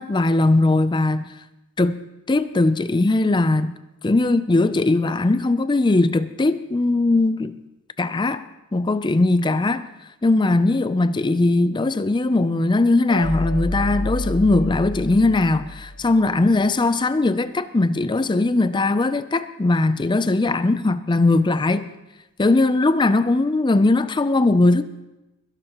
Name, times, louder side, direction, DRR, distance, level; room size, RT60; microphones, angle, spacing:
voice 1, 0.0-1.3 1.8-2.0 2.3-3.7 4.0-7.6 8.0-8.4 8.7-9.9 10.2-21.9 22.4-24.8, left 2 dB, 20° left, 0.4 m, -19 dB
sound 1, 13.1-16.3, left 1 dB, 90° left, 2.4 m, -29 dB
22.5 x 12.0 x 3.0 m
head